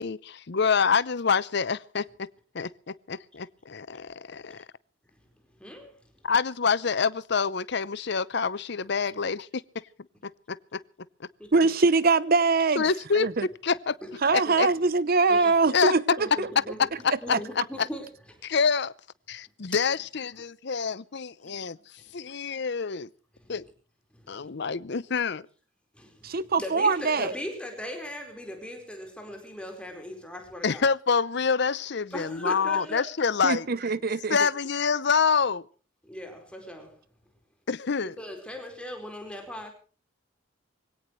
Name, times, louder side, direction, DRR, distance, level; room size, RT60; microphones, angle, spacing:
voice 1, 0.0-2.3 2.5-4.6 6.2-9.6 10.2-10.8 11.2-11.3 12.8-13.3 13.6-14.0 14.3-14.7 15.7-15.9 17.0-17.4 17.8-17.9 18.4-18.9 19.3-21.8 22.1-23.1 23.5-23.6 24.3-25.4 30.6-33.7 34.3-35.6 37.7-38.2, left 5 dB, 60° left, 0.7 m, -27 dB
voice 2, 5.6-5.9 11.4-11.7 14.0-14.1 14.4-14.6 15.3-15.5 16.2-16.9 17.2-18.1 23.4-23.5 24.1-24.5 25.9-30.9 32.1-33.1 36.0-37.0 38.2-39.7, equal, 5° left, 4.5 m, -39 dB
voice 3, 11.5-12.8 13.1-13.5 14.2-16.5 17.3-17.4 26.2-27.3 33.4-34.4, right 4 dB, 50° right, 0.8 m, -23 dB
23.5 x 17.5 x 3.2 m
head